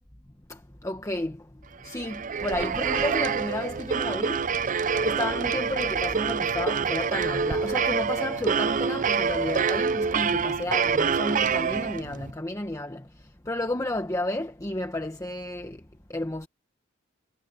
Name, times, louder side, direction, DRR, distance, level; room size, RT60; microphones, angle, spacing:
voice 1, 0.5-1.4 1.8-4.4 5.0-13.1 13.5-15.8 16.1-16.5, left 1 dB, 15° left, 1.2 m, -32 dB
sound 1, 1.9-12.3, right 6 dB, 40° right, 0.5 m, -26 dB
head